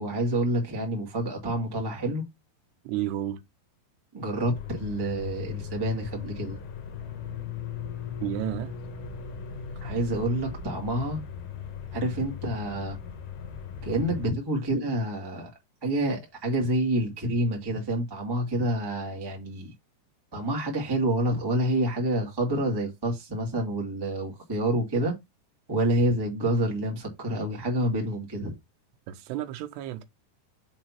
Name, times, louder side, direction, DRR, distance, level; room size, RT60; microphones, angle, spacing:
voice 1, 0.0-2.2 4.1-6.6 9.8-11.2 11.9-13.0 13.8-15.5 15.8-19.7 20.3-25.1 25.7-28.5, right 1 dB, 15° right, 0.7 m, -28 dB
voice 2, 2.8-3.4 8.2-8.7 29.1-30.0, right 12 dB, 85° right, 2.9 m, -31 dB
sound 1, 4.5-14.3, left 7 dB, 60° left, 2.2 m, -38 dB
7.3 x 3.0 x 5.8 m
omnidirectional pair, 4.8 m